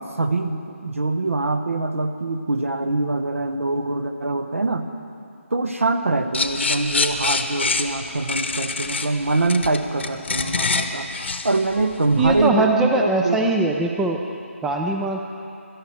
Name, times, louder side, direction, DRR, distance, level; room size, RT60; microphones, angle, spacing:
voice 1, 0.2-4.9 5.5-13.4, right 2 dB, 70° right, 7 dB, 1.2 m, -24 dB
sound 1, 6.3-12.5, left 4 dB, 55° left, 0.9 m, -25 dB
voice 2, 12.2-14.2 14.6-15.2, right 2 dB, 5° right, 2 dB, 0.3 m, -21 dB
17.5 x 12.5 x 4.4 m, 2.5 s
figure-of-eight pair, 155°, 8 cm